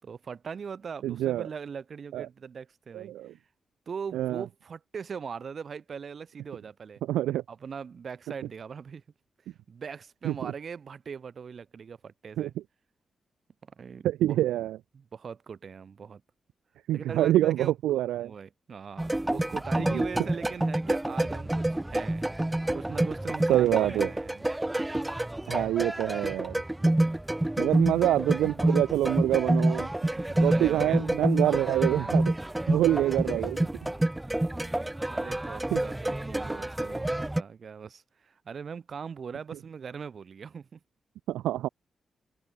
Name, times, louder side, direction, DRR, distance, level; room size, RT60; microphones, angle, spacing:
voice 1, 0.0-3.4 3.9-7.0 7.5-9.0 9.5-12.5 13.6-14.4 14.9-16.2 16.9-17.7 18.2-24.4 26.8-27.1 30.0-31.0 34.3-40.8, right 6 dB, 60° right, 3.7 m, -41 dB
voice 2, 1.0-1.5 2.1-2.3 2.9-3.3 4.1-4.4 7.1-7.4 10.2-10.5 12.4-12.5 14.0-14.8 16.9-18.3 23.5-24.1 25.5-26.5 27.6-29.9 30.4-32.3 32.7-33.7 35.7-35.8 41.3-41.7, right 13 dB, 85° right, 0.4 m, -26 dB
sound 1, 19.0-37.4, right 1 dB, 15° right, 0.9 m, -28 dB
hypercardioid pair, 40°, 0 cm